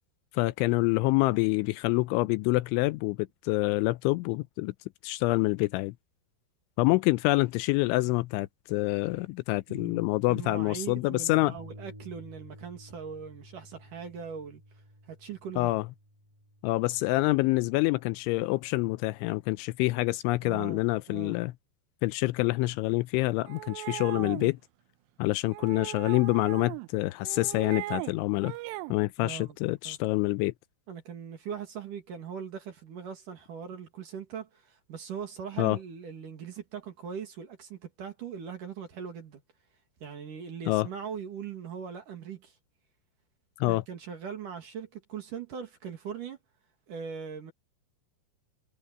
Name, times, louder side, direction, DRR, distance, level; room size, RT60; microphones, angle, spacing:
voice 1, 0.3-4.7 5.0-5.9 6.8-11.5 15.6-15.8 16.6-21.5 22.0-24.6 25.2-28.5 28.9-30.5 35.6-35.8 40.7-40.9 43.6-43.8, left 21 dB, 85° left, 2.9 m, -26 dB
voice 2, 9.7-14.6 15.1-15.7 20.4-20.8 21.1-21.4 24.2-24.4 29.2-29.6 29.8-30.0 30.9-39.4 40.0-42.5 43.6-46.4 46.9-47.5, right 7 dB, 50° right, 3.1 m, -40 dB
Bass guitar, 11.6-17.8, equal, 10° right, 1.5 m, -52 dB
sound 1, 23.5-24.5 25.5-26.9 27.2-28.1 28.4-29.0, right 18 dB, 90° right, 3.4 m, -38 dB
omnidirectional pair, 5.6 m